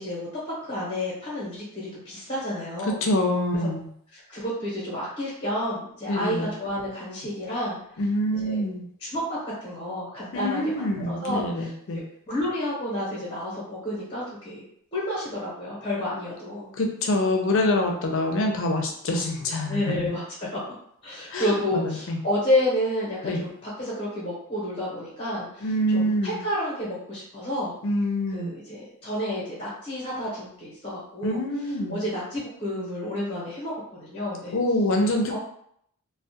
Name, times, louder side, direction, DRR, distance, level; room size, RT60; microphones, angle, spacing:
voice 1, 0.0-3.0 3.5-3.7 4.1-7.8 8.3-8.7 9.0-14.6 14.9-16.7 19.7-20.6 21.0-27.7 28.3-34.6 35.3-35.4, left 1 dB, 25° left, -8 dB, 0.8 m, -30 dB
voice 2, 2.9-3.9 6.1-6.5 8.0-8.8 10.3-12.0 16.8-20.2 21.3-22.2 23.2-23.4 25.6-26.4 27.8-28.5 31.2-32.0 34.5-35.4, left 1 dB, 60° left, 2 dB, 0.5 m, -25 dB
2.2 x 2.1 x 2.7 m, 0.68 s
head